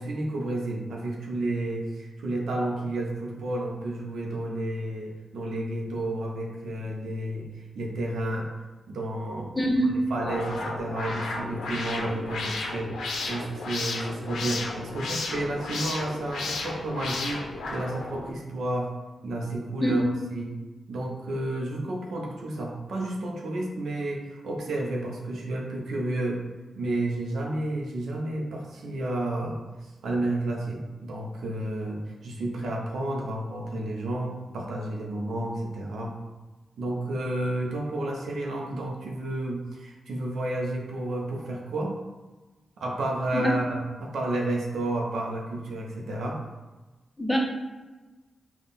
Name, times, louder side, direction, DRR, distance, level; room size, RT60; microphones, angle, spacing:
voice 1, 0.0-7.5 7.7-8.5 8.9-9.5 9.8-12.9 13.3-18.9 19.2-20.0 20.3-20.5 20.9-26.4 26.8-36.1 36.8-41.9 42.8-46.4, right 1 dB, 85° right, -1 dB, 0.7 m, -31 dB
voice 2, 9.5-10.0 19.8-20.2 43.3-43.6 47.2-47.4, equal, 5° left, -1 dB, 0.9 m, -24 dB
sound 1, 10.1-18.3, left 3 dB, 85° left, 0.6 m, -33 dB
3.6 x 2.4 x 4.0 m, 1.2 s
cardioid pair, 55°, 0 cm